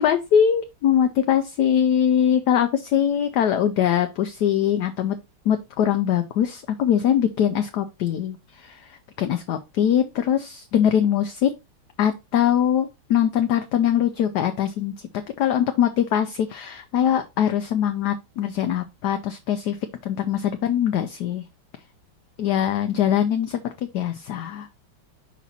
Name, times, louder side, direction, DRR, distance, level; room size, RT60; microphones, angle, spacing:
voice 1, 0.0-5.2 5.5-11.5 12.0-14.9 15.4-19.8 20.0-21.4 22.4-23.6 23.9-24.7, left 9 dB, 70° left, 7 dB, 1.0 m, -22 dB
6.1 x 4.3 x 4.0 m, 0.25 s
omnidirectional pair, 2.2 m